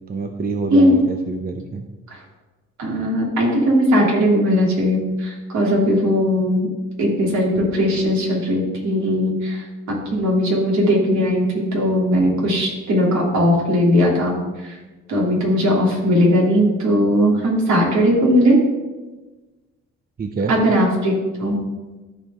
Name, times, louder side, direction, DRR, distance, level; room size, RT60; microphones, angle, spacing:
voice 1, 0.1-1.8 13.4-13.5 20.2-20.5, right 4 dB, 30° right, 5 dB, 0.7 m, -26 dB
voice 2, 2.8-6.7 7.0-9.6 10.1-14.3 14.6-14.7 15.1-18.6 20.5-21.1 21.4-21.5, equal, 70° right, -3 dB, 3.1 m, -18 dB
13.5 x 4.5 x 3.7 m, 1.2 s
cardioid pair, 90°, 30 cm